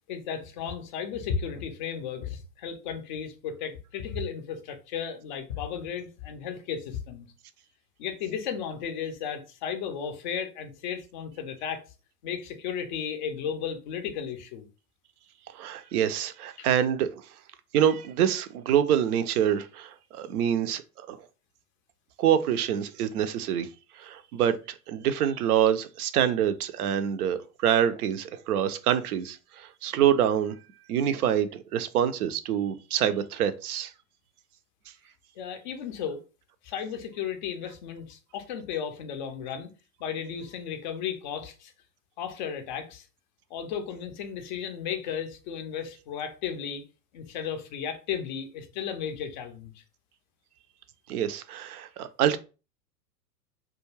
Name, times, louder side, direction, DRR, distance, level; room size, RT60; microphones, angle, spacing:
voice 1, 0.1-7.3 8.0-11.8 12.2-14.7 16.6-16.7 35.4-36.2 36.6-39.7 40.0-41.7 42.2-43.1 43.5-46.8 47.1-49.8, left 7 dB, 30° left, 0.4 m, -34 dB
voice 2, 15.5-17.1 17.7-20.8 21.1-21.2 22.2-23.7 24.0-30.5 30.9-33.9 51.1-52.4, right 9 dB, 65° right, 0.5 m, -26 dB
2.3 x 2.2 x 3.1 m
hypercardioid pair, 100°, 50 cm